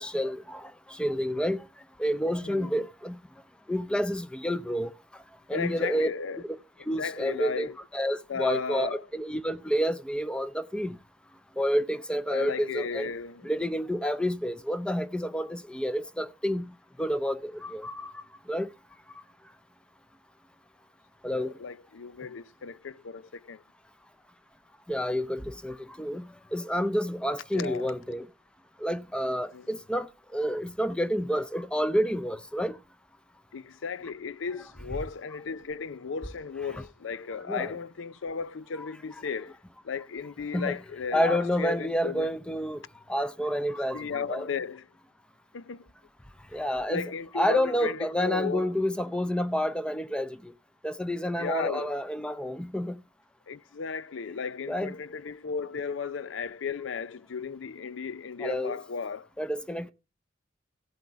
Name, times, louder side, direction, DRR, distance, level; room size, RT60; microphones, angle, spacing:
voice 1, 0.0-1.7 2.0-3.2 3.7-4.9 5.5-6.1 6.4-6.5 6.9-11.0 11.6-13.1 13.4-18.2 18.5-18.7 21.2-21.6 24.9-28.3 28.8-32.8 37.5-37.7 38.8-38.9 40.5-40.8 41.1-42.8 43.1-44.5 46.5-47.1 47.4-50.5 50.8-53.0 54.7-54.9 58.4-58.8 59.4-59.9, equal, 5° left, 0.6 m, -29 dB
voice 2, 5.5-6.4 7.0-7.8 8.3-9.1 12.3-13.5 21.3-23.6 27.5-27.9 29.5-29.7 33.5-39.6 39.8-42.3 43.9-44.9 45.5-45.9 46.9-48.7 51.3-52.0 53.5-59.3, left 5 dB, 90° left, 0.5 m, -35 dB
16.0 x 8.0 x 4.6 m
head